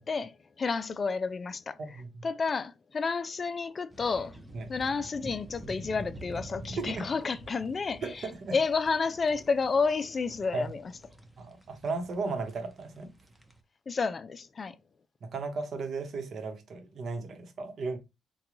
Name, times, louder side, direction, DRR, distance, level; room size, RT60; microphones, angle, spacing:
voice 1, 0.0-2.0 2.2-4.3 4.7-10.8 13.9-14.8, left 4 dB, 35° left, 0.4 m, -31 dB
voice 2, 1.8-2.2 4.5-4.7 6.8-7.0 8.0-8.5 10.5-10.7 11.4-13.1 15.2-18.0, right 3 dB, 55° right, 0.9 m, -35 dB
sound 1, 3.9-13.6, right 1 dB, 10° right, 0.7 m, -47 dB
3.7 x 2.3 x 3.0 m
cardioid pair, 90°, 0 cm